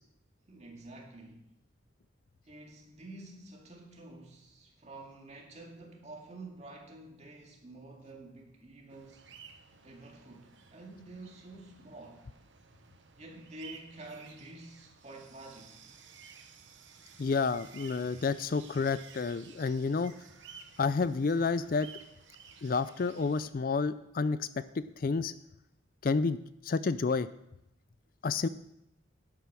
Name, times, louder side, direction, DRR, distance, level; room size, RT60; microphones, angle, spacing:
voice 1, 0.5-1.5 2.5-9.3 9.8-12.3 13.2-15.8, right 2 dB, 35° right, 0 dB, 2.2 m, -49 dB
sound 1, 8.9-23.5, right 6 dB, 75° right, 1.1 m, -54 dB
voice 2, 17.2-20.1 20.8-21.9 22.6-24.5 24.7-25.3 26.0-26.4 26.6-27.3 28.2-28.5, left 4 dB, 45° left, 15 dB, 0.4 m, -30 dB
11.0 x 8.4 x 6.2 m, 0.82 s
head